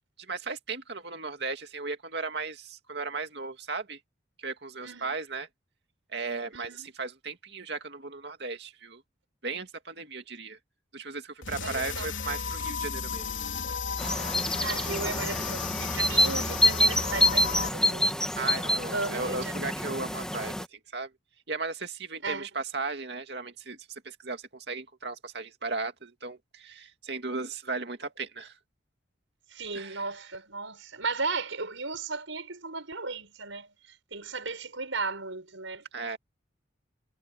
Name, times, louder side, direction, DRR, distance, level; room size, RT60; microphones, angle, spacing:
voice 1, 0.2-4.0 4.4-5.5 6.1-9.0 9.4-10.6 10.9-13.3 18.4-21.1 21.5-28.6 29.7-30.1 35.9-36.2, right 3 dB, 55° right, 2.5 m, -36 dB
voice 2, 4.8-5.1 6.5-6.9 11.6-12.1 14.6-18.2 18.9-19.5 22.2-22.5 29.5-35.8, right 4 dB, 85° right, 6.0 m, -35 dB
sound 1, 11.4-17.7, left 6 dB, 80° left, 3.5 m, -34 dB
sound 2, 14.0-20.6, left 1 dB, 5° left, 2.2 m, -27 dB
head